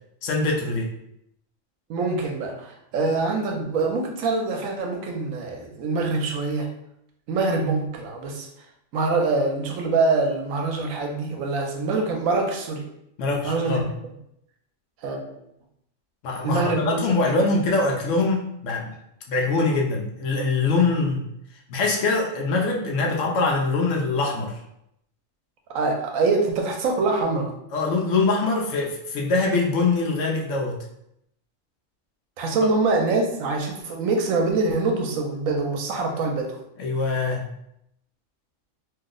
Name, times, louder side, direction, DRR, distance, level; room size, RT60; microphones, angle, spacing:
voice 1, 0.2-0.9 13.2-13.9 16.2-18.9 19.3-21.2 21.7-24.6 27.7-30.8 36.8-37.5, left 3 dB, 70° left, 0 dB, 0.9 m, -23 dB
voice 2, 1.9-6.7 7.3-8.5 8.9-12.8 13.4-13.8 15.0-15.3 16.4-17.4 25.7-27.5 32.4-36.6, right 3 dB, 80° right, 2 dB, 1.0 m, -24 dB
2.8 x 2.0 x 3.7 m, 0.78 s
omnidirectional pair, 1.4 m